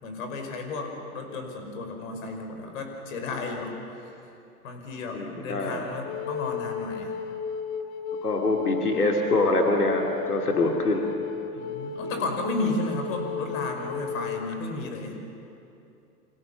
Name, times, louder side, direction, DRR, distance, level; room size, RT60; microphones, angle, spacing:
voice 1, 0.0-4.3 4.6-7.1 11.5-15.2, left 2 dB, 60° left, 4 dB, 5.5 m, -33 dB
voice 2, 5.1-5.8 8.2-11.1, left 2 dB, 80° left, 2 dB, 2.7 m, -24 dB
Wind instrument woodwind instrument, 6.0-14.5, left 6 dB, 40° left, 1.9 m, -34 dB
29.5 x 25.5 x 7.1 m, 2.7 s
figure-of-eight pair, 100°, 45 cm